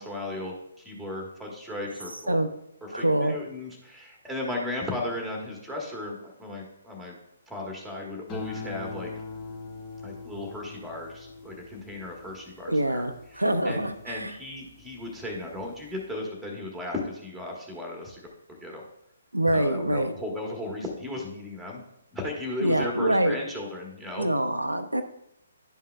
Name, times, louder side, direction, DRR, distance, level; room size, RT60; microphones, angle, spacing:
voice 1, 0.0-2.4 2.8-7.2 7.5-9.1 10.0-13.0 13.3-18.3 18.6-18.8 19.5-21.8 22.1-24.3, left 1 dB, ahead, -1 dB, 1.5 m, -36 dB
voice 2, 2.9-3.4 12.7-14.4 19.3-20.1 22.6-23.4 24.2-25.0, right 1 dB, 85° right, 8 dB, 0.6 m, -25 dB
sound 1, 8.3-14.8 15.3-15.8, left 4 dB, 20° left, 1.2 m, -42 dB
11.0 x 5.4 x 2.3 m, 0.80 s
figure-of-eight pair, 135°, 0 cm